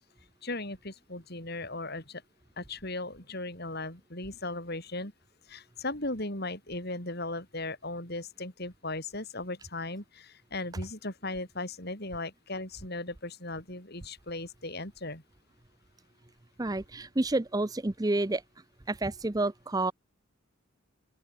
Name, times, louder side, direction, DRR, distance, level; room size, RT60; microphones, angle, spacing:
voice 1, 0.4-2.2 2.6-5.1 5.5-15.2, left 2 dB, 50° left, 6.8 m, -37 dB
voice 2, 16.6-18.4 18.9-19.9, right 2 dB, 15° right, 0.6 m, -29 dB
open air
head